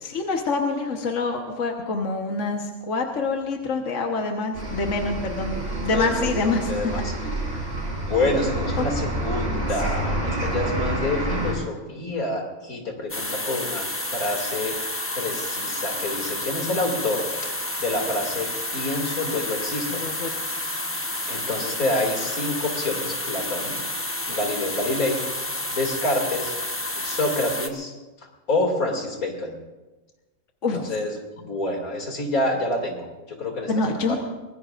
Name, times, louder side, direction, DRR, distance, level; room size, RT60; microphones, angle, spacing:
voice 1, 0.0-7.4 8.8-8.9 19.9-20.7 30.6-30.9 33.7-34.2, left 3 dB, 60° left, 2 dB, 1.6 m, -26 dB
sound 1, 4.5-11.5, right 1 dB, 45° right, 4.4 m, -28 dB
voice 2, 6.4-7.1 8.0-14.8 15.1-18.5 18.7-20.0 21.2-23.8 24.3-25.2 25.7-26.5 27.0-27.9 28.5-29.6 30.7-34.2, left 2 dB, 90° left, 1 dB, 3.1 m, -27 dB
sound 2, 13.1-27.7, left 1 dB, 10° left, 0.8 m, -30 dB
24.5 x 20.0 x 2.6 m, 1.1 s
omnidirectional pair, 1.5 m